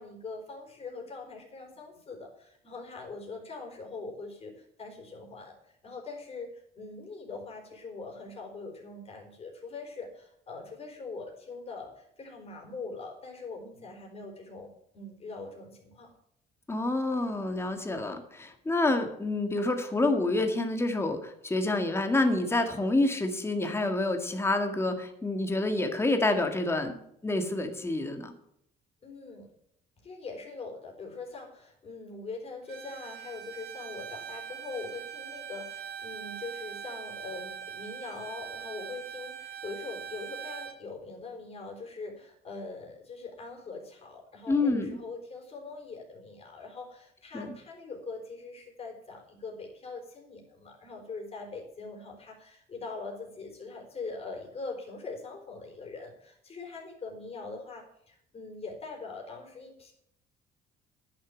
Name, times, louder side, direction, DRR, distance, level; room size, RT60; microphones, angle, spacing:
voice 1, 0.0-5.6 5.8-16.1 29.0-29.5 30.0-59.9, left 3 dB, 35° left, 2 dB, 4.4 m, -42 dB
voice 2, 16.7-27.0 27.2-28.3 44.5-45.0 47.3-47.5, left 2 dB, 15° left, 5 dB, 1.8 m, -28 dB
Bowed string instrument, 32.7-40.8, right 8 dB, 70° right, 1.5 m, -42 dB
10.5 x 6.7 x 9.0 m, 0.72 s
cardioid pair, 110°, 17 cm